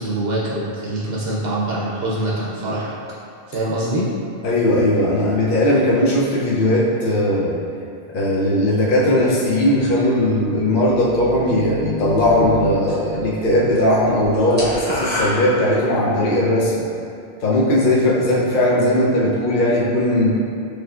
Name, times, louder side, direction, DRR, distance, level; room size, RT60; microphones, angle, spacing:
voice 1, 0.0-2.9 3.5-4.1, right 1 dB, 65° right, -6 dB, 0.8 m, -24 dB
voice 2, 4.4-7.6 8.1-16.9 17.4-20.4, left 1 dB, 55° left, -5 dB, 0.8 m, -18 dB
sound 1, 10.6-15.6, right 1 dB, 30° right, 0.3 m, -36 dB
sound 2, 12.2-13.2 13.5-13.8 14.1-16.2, left 1 dB, 10° right, 0.9 m, -27 dB
6.3 x 3.2 x 2.4 m, 2.5 s
omnidirectional pair, 1.1 m